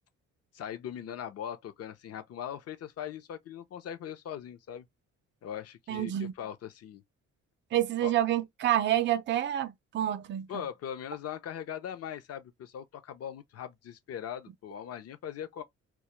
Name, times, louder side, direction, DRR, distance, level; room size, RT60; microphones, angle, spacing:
voice 1, 0.5-4.9 5.4-7.0 8.0-8.1 10.5-15.6, left 9 dB, 55° left, 0.6 m, -40 dB
voice 2, 5.9-6.3 7.7-10.5, right 12 dB, 40° right, 0.4 m, -28 dB
2.3 x 2.1 x 2.9 m
cardioid pair, 90°, 30 cm